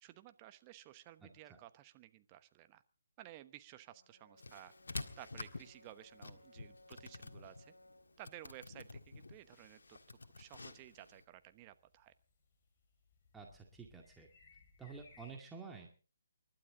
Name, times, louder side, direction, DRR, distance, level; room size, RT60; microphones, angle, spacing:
voice 1, 0.0-2.8 3.2-4.7 5.2-7.7 8.2-10.0 10.4-12.1, right 14 dB, 25° right, 11 dB, 1.1 m, -55 dB
Brass instrument, 3.9-8.2, left 1 dB, 90° left, 2.7 m, -64 dB
sound 1, 4.4-11.2, left 3 dB, 70° left, 1.7 m, -50 dB
sound 2, 4.8-15.3, left 4 dB, 35° left, 5.6 m, -70 dB
voice 2, 13.3-14.3 14.8-15.9, right 5 dB, 10° right, 1 dB, 2.2 m, -50 dB
29.0 x 12.0 x 3.8 m, 0.38 s
figure-of-eight pair, 145°, 0 cm